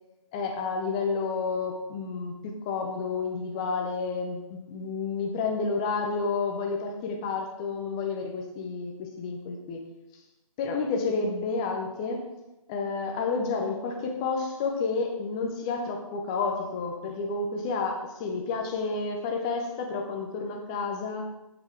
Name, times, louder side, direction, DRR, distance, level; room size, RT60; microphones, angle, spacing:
voice 1, 0.3-9.8 10.6-12.3 12.7-21.3, left 4 dB, 10° left, 3 dB, 0.5 m, -30 dB
7.8 x 7.8 x 3.7 m, 0.98 s
figure-of-eight pair, 155°, 18 cm